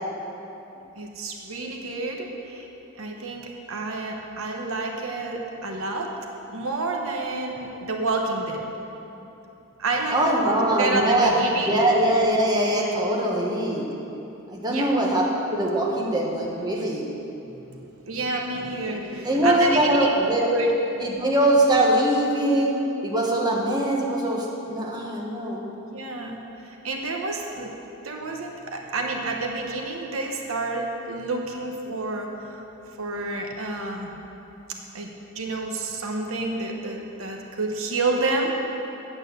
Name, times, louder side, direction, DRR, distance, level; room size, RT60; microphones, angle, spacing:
voice 1, 1.0-2.7 3.0-6.1 6.5-8.6 9.8-11.8 14.7-14.9 17.7-17.8 18.0-20.1 20.5-20.7 25.9-27.7 28.0-32.6 33.0-34.1 34.9-35.1 35.3-38.6, right 2 dB, 70° right, 1 dB, 1.0 m, -29 dB
voice 2, 10.1-13.9 14.5-17.0 19.2-20.5 21.0-22.8 23.0-25.6, right 1 dB, 20° right, -3 dB, 1.3 m, -22 dB
8.7 x 8.5 x 6.7 m, 3.0 s
head